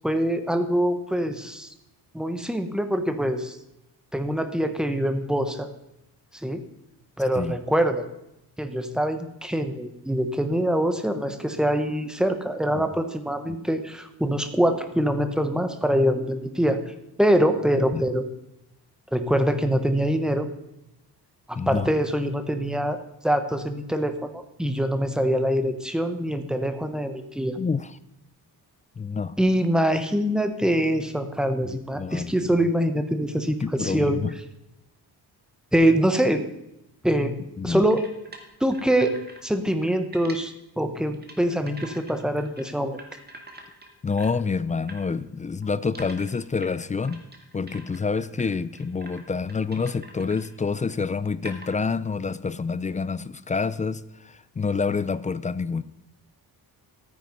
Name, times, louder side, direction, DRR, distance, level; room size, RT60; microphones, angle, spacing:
voice 1, 0.0-1.7 2.1-3.6 4.1-5.7 6.4-6.6 7.2-8.0 8.6-16.9 17.2-18.3 19.1-20.5 21.5-27.6 29.4-34.2 35.7-36.4 37.0-37.4 37.6-38.0 38.6-39.2 39.4-43.0, equal, ahead, 7 dB, 1.1 m, -24 dB
voice 2, 21.5-21.9 27.6-27.9 29.0-29.3 31.6-32.6 33.6-34.3 37.6-37.9 44.0-47.2 47.5-55.8, left 5 dB, 20° left, 16 dB, 0.4 m, -28 dB
sound 1, 37.9-39.4 39.7-40.4 40.9-41.4 41.7-42.6 42.9-44.4 44.9-45.0 45.6-48.5 48.7-49.2 49.5-50.5 50.9-51.0 51.4-51.8, right 2 dB, 25° right, 2.0 m, -44 dB
13.5 x 9.5 x 5.4 m, 0.86 s
cardioid pair, 125°, 39 cm